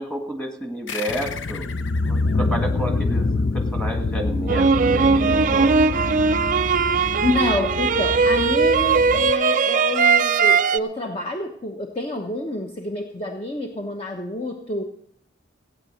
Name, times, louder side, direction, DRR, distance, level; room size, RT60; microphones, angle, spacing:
voice 1, 0.0-1.6 2.0-5.8, right 1 dB, 5° left, 2 dB, 1.7 m, -30 dB
sound 1, 0.9-3.8, left 6 dB, 80° left, 0.8 m, -37 dB
sound 2, 1.1-9.3, left 3 dB, 50° left, 0.5 m, -26 dB
sound 3, 4.5-10.8, right 5 dB, 45° right, 0.4 m, -19 dB
voice 2, 7.2-14.8, left 2 dB, 30° left, 3 dB, 1.1 m, -27 dB
15.5 x 8.8 x 6.5 m, 0.68 s
head